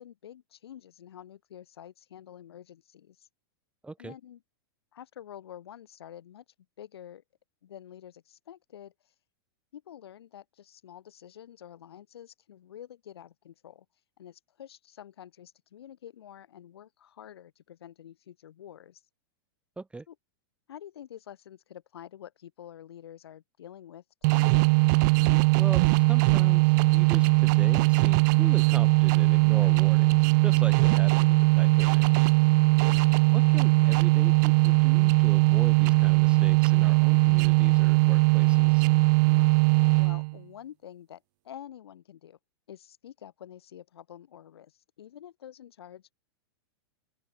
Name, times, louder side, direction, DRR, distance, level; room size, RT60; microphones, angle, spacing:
voice 1, 0.0-3.3 4.0-4.4 4.9-6.4 6.8-7.2 7.6-9.1 9.7-13.9 14.2-19.0 20.1-20.2 20.7-24.5 30.7-31.1 32.9-33.3 39.2-39.5 39.9-42.4 42.7-46.1, left 10 dB, 80° left, 7.2 m, -48 dB
voice 2, 3.8-4.1 19.8-20.1 25.5-32.1 33.3-38.9, right 3 dB, 10° right, 3.6 m, -40 dB
sound 1, 24.2-40.4, right 28 dB, 50° right, 0.7 m, -20 dB
open air
hypercardioid pair, 120°, 13 cm